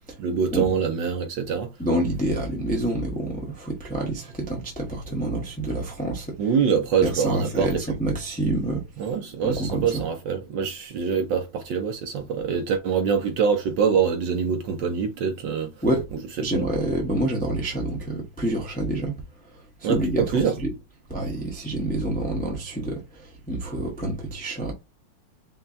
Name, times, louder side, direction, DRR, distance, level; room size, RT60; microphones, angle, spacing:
voice 1, 0.2-1.7 6.4-7.8 9.0-15.7 19.8-20.5, right 6 dB, 70° right, 1.2 m, -24 dB
voice 2, 1.8-6.4 7.0-8.8 9.4-10.0 15.8-16.0 16.4-19.1 19.5-20.7 21.1-24.7, right 1 dB, 10° left, 0.5 m, -27 dB
5.5 x 2.3 x 2.6 m
omnidirectional pair, 2.4 m